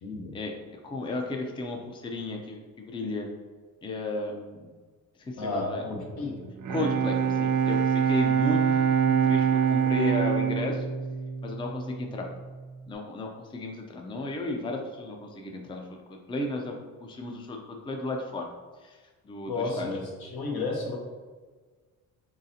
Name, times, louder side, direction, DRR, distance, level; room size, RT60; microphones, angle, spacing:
voice 1, 0.0-0.3 5.4-6.3 19.5-21.0, left 3 dB, 75° left, -1 dB, 1.1 m, -32 dB
voice 2, 0.8-3.3 3.8-4.7 5.2-5.8 6.7-8.6 9.0-10.8 11.4-12.3 12.9-16.7 17.0-18.5 18.8-19.0 19.2-19.9, left 2 dB, 15° left, 2 dB, 0.4 m, -34 dB
Bowed string instrument, 6.4-12.2, right 7 dB, 55° right, 0.4 m, -25 dB
4.0 x 3.9 x 2.7 m, 1.4 s
cardioid pair, 105°, 37 cm